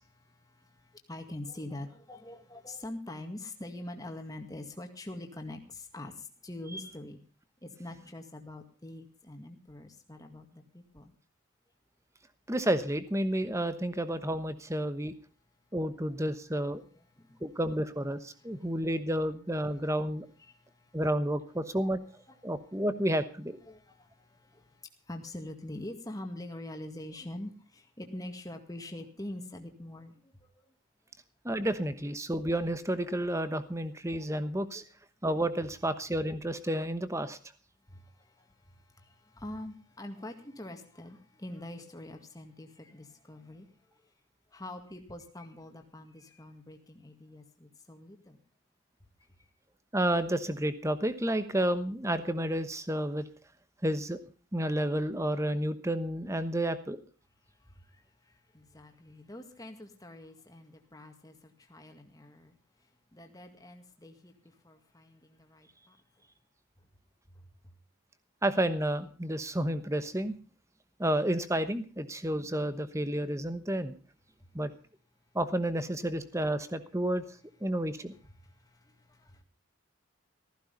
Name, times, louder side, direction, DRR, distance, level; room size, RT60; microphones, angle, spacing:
voice 1, 0.0-7.2 7.6-11.1 16.7-17.4 18.3-18.7 20.4-21.0 22.3-22.4 23.7-30.7 37.9-43.7 44.5-48.4 49.4-49.5 57.6-62.6 63.1-66.3 67.3-67.7 78.4-79.4, left 1 dB, 15° left, 5 dB, 2.0 m, -45 dB
voice 2, 12.5-15.1 15.7-16.8 17.4-20.3 20.9-22.0 22.4-23.6 31.4-34.8 35.2-37.4 49.9-53.2 53.8-54.2 54.5-57.0 68.4-70.3 71.0-74.0 74.5-74.7 75.3-77.3 77.6-78.1, right 1 dB, 15° right, 12 dB, 1.1 m, -30 dB
15.0 x 15.0 x 5.3 m, 0.37 s
head